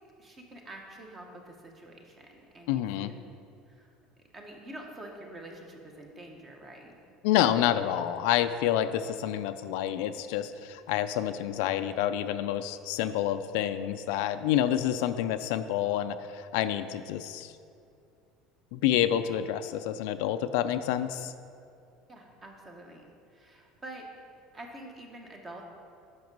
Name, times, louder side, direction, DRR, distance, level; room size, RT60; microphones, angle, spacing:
voice 1, 0.2-3.1 3.7-3.9 4.3-6.9 22.1-24.1 24.5-25.6, right 1 dB, 20° right, 2 dB, 0.9 m, -47 dB
voice 2, 2.7-3.1 7.2-17.5 18.7-21.3, left 11 dB, 70° left, 10 dB, 0.4 m, -28 dB
7.8 x 5.9 x 5.3 m, 2.5 s
cardioid pair, 165°, 0 cm